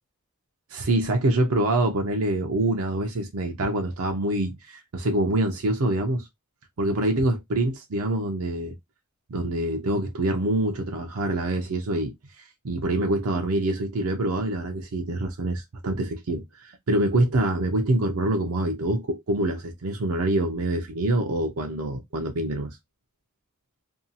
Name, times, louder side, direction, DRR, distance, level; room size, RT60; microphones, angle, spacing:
voice 1, 0.7-6.3 6.8-8.7 9.3-12.1 12.6-22.7, right 1 dB, 75° right, 0.6 m, -25 dB
2.7 x 2.3 x 2.6 m
head